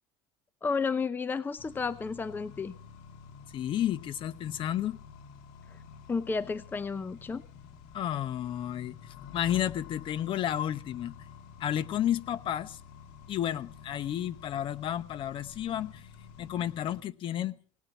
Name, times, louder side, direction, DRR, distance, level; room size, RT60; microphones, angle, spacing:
voice 1, 0.6-2.7 6.1-7.4, left 5 dB, 15° left, 15 dB, 0.7 m, -32 dB
Accelerating revving vroom, 1.6-17.0, left 7 dB, 80° left, 2.0 m, -50 dB
voice 2, 3.5-5.0 7.9-11.1 11.6-12.8 13.3-16.1 16.4-17.6, left 11 dB, 45° left, 15 dB, 0.9 m, -32 dB
18.5 x 9.1 x 7.1 m, 0.43 s
cardioid pair, 120°, 11 cm